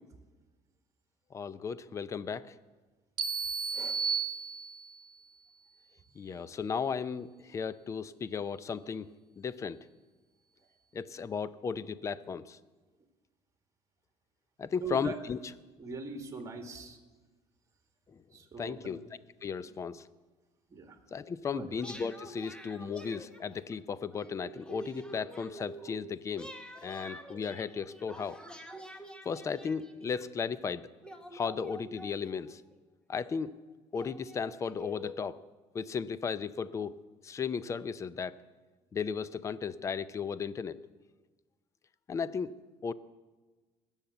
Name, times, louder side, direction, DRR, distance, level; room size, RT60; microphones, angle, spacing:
voice 1, 1.3-2.6 6.2-9.1 9.4-9.8 10.9-12.6 14.6-15.5 18.1-18.2 18.6-19.0 19.4-20.1 21.1-26.5 26.8-28.4 29.2-30.9 31.3-32.6 33.1-33.5 33.9-35.4 35.7-36.9 37.2-38.4 38.9-40.8 42.1-42.5 42.8-42.9, left 6 dB, 30° left, 16 dB, 0.5 m, -35 dB
sound 1, 3.2-5.1, right 6 dB, 50° right, 1.1 m, -33 dB
voice 2, 14.8-15.2 15.8-17.0 18.3-18.9 20.7-21.0 21.5-21.7, right 4 dB, 30° right, 5 dB, 2.0 m, -41 dB
sound 2, 21.8-23.7 24.1-26.0 26.3-30.2 31.0-32.7 33.4-33.5 33.9-35.1, equal, 10° left, 1.2 m, -47 dB
19.5 x 7.3 x 7.9 m, 1.3 s
cardioid pair, 120°, 11 cm